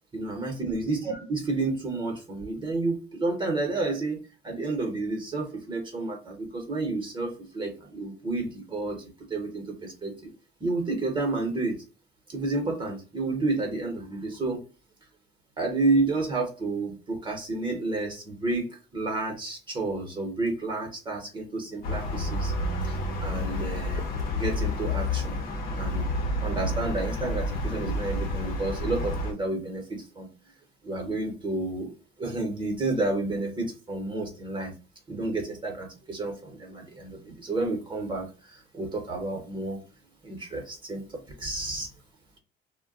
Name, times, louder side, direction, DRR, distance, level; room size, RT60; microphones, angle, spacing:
voice 1, 0.1-9.0 9.3-10.3 10.6-11.8 12.3-14.6 15.6-22.5 22.9-24.1 24.3-25.4 25.8-26.1 26.4-30.3 30.8-31.9 32.2-34.7 35.1-39.8 40.2-41.9, right 2 dB, 25° right, 2 dB, 1.0 m, -30 dB
sound 1, 21.8-29.3, left 1 dB, 60° left, 0.8 m, -29 dB
2.2 x 2.2 x 3.7 m, 0.34 s
cardioid pair, 110°, 17 cm